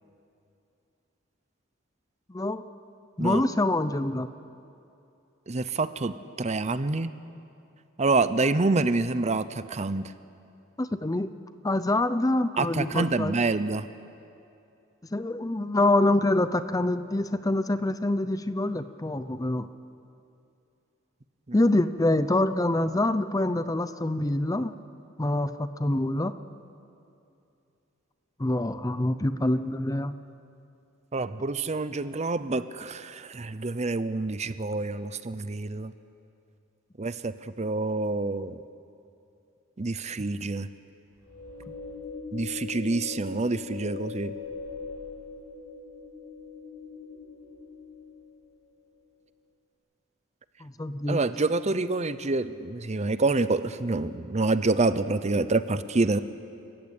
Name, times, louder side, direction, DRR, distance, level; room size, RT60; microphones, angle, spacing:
voice 1, 2.3-2.6 3.2-4.3 10.8-11.3 11.6-13.3 15.1-19.7 21.5-24.7 25.2-26.3 28.4-30.1 50.6-51.2, left 1 dB, 15° left, 12 dB, 0.6 m, -25 dB
voice 2, 5.5-7.1 8.0-10.1 12.6-13.9 31.1-35.9 37.0-38.5 39.8-40.7 42.3-44.3 51.1-56.2, right 3 dB, 35° right, 13 dB, 0.7 m, -27 dB
sound 1, 41.2-48.5, left 5 dB, 20° right, 7.2 m, -41 dB
29.0 x 15.0 x 8.9 m, 2.6 s
head